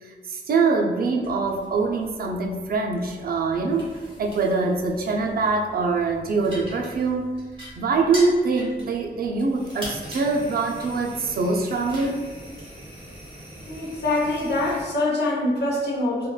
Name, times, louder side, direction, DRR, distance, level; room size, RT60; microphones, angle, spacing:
voice 1, 0.0-3.9 4.2-7.4 7.8-12.2, right 3 dB, 55° right, 1 dB, 0.4 m, -24 dB
sound 1, 1.2-14.8, equal, 25° right, 0.9 m, -42 dB
voice 2, 13.7-16.3, left 2 dB, 65° left, -4 dB, 0.8 m, -24 dB
3.6 x 2.2 x 2.3 m, 1.4 s
wide cardioid pair, 130°, 19 cm